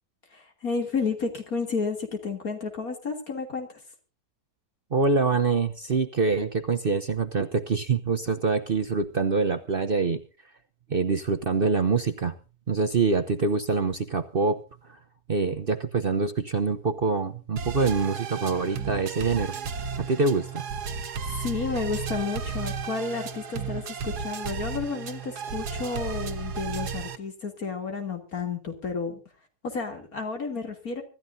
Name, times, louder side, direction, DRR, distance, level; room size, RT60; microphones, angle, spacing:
voice 1, 0.3-3.8 21.3-29.2 29.6-31.0, left 4 dB, 65° left, 4 dB, 3.5 m, -31 dB
voice 2, 4.9-10.2 10.9-12.3 12.7-14.6 14.9-15.0 15.3-19.6 20.0-20.6, right 4 dB, 45° right, 7 dB, 0.9 m, -25 dB
sound 1, 17.6-27.2, right 5 dB, 85° right, 1.8 m, -33 dB
25.0 x 13.5 x 2.7 m, 0.33 s
omnidirectional pair, 1.7 m